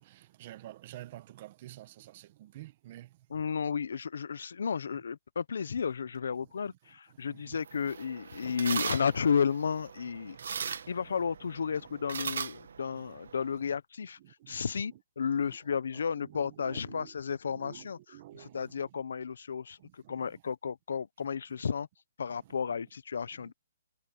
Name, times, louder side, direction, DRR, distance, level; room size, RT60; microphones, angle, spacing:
voice 1, 0.0-3.3 6.7-7.9 10.2-11.1 11.5-12.1 12.9-13.2 13.5-13.8 14.2-15.0 15.3-17.2 17.5-19.0 19.8-20.4 21.2-21.6 22.3-22.6 23.3-23.5, right 15 dB, 30° right, 1.1 m, -52 dB
voice 2, 3.3-10.4 10.9-14.2 14.5-18.0 18.3-21.9 22.2-23.5, left 6 dB, 70° left, 0.8 m, -33 dB
sound 1, 7.5-13.6, right 6 dB, 70° right, 1.4 m, -40 dB
hypercardioid pair, 170°, 0 cm